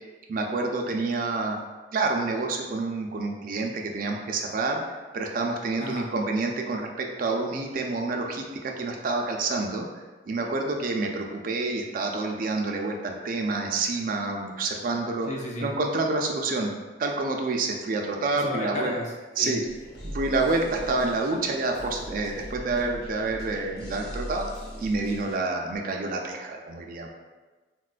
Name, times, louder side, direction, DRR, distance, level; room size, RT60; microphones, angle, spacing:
voice 1, 0.3-1.6 1.9-4.8 5.1-9.9 10.3-15.3 15.6-16.7 17.0-18.9 19.4-19.6 20.0-24.5 24.8-27.1, right 3 dB, 50° right, 1 dB, 0.3 m, -28 dB
voice 2, 15.3-15.7 18.3-19.1 19.4-19.6, left 1 dB, 40° left, -1 dB, 0.5 m, -33 dB
sound 1, 19.6-25.4, equal, 60° left, 0.9 m, -40 dB
4.0 x 2.2 x 2.4 m, 1.2 s
head